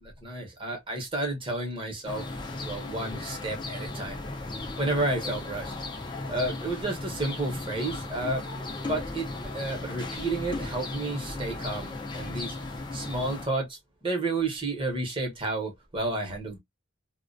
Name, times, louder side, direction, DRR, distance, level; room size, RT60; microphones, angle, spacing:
voice 1, 0.0-2.3 2.5-4.2 4.8-5.7 6.3-8.5 8.9-9.3 9.5-12.6 12.9-16.6, right 2 dB, 25° right, 0.8 m, -31 dB
sound 1, 2.1-13.5, left 2 dB, 20° left, 0.4 m, -36 dB
2.3 x 2.1 x 2.5 m
head